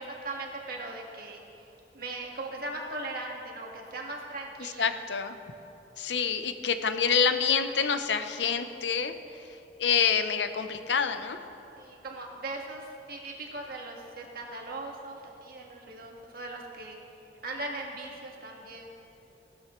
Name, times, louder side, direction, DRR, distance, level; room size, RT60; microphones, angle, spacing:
voice 1, 0.0-1.4 1.9-4.8 11.8-17.0 17.4-18.9, right 2 dB, 55° right, 0 dB, 1.7 m, -39 dB
voice 2, 4.6-5.4 6.0-9.1 9.8-11.4, left 6 dB, 85° left, 9 dB, 0.7 m, -27 dB
16.0 x 12.5 x 3.1 m, 2.8 s
head